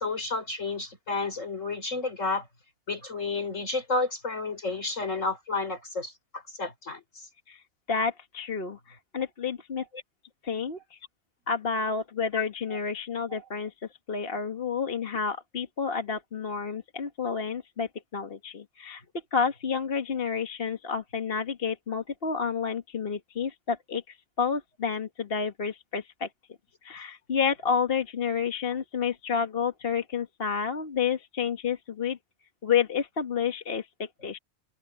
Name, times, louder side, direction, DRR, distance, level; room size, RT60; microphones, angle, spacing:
voice 1, 0.0-2.4 2.9-7.0 12.3-12.4 12.7-12.8 13.3-13.4, left 3 dB, 70° left, 4.9 m, -31 dB
voice 2, 7.9-9.8 10.4-11.0 11.5-13.7 14.1-19.0 19.3-26.3 26.8-32.2 32.6-34.4, left 6 dB, 45° left, 1.6 m, -30 dB
omnidirectional pair, 1.3 m